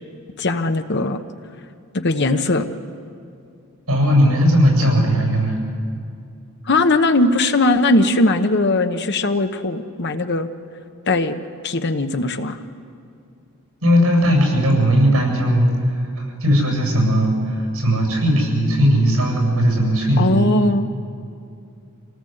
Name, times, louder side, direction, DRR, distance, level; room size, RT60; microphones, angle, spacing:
voice 1, 0.4-1.2 1.9-2.7 6.6-10.5 11.1-12.6 20.2-20.8, left 2 dB, 50° left, 7 dB, 1.0 m, -19 dB
voice 2, 3.9-5.6 13.8-15.7 16.2-20.5, equal, 85° right, 1 dB, 7.8 m, -17 dB
26.0 x 18.0 x 7.9 m, 2.4 s
head